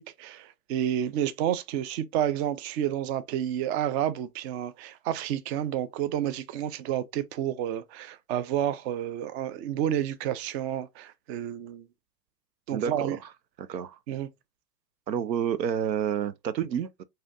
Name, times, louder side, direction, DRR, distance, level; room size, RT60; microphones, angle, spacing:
voice 1, 0.0-11.9 12.7-13.2 14.1-14.3, right 10 dB, 40° right, 0.6 m, -30 dB
voice 2, 12.7-13.2 13.6-14.0 15.1-17.0, right 8 dB, 85° right, 0.6 m, -29 dB
4.8 x 2.8 x 2.4 m
hypercardioid pair, 105°, 50 cm